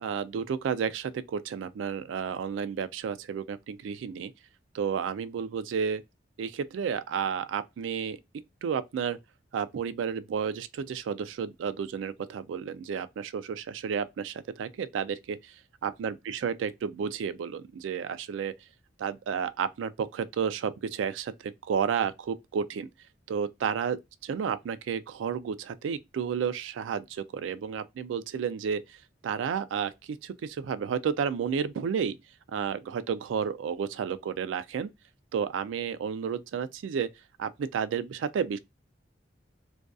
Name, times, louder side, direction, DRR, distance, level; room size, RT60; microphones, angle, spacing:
voice 1, 0.0-4.3 4.7-6.0 6.4-9.2 9.5-15.5 15.8-18.5 19.0-22.9 23.3-32.2 32.5-34.9 35.3-37.1 37.4-38.6, right 7 dB, 90° right, 0.3 m, -32 dB
2.5 x 2.3 x 2.3 m
head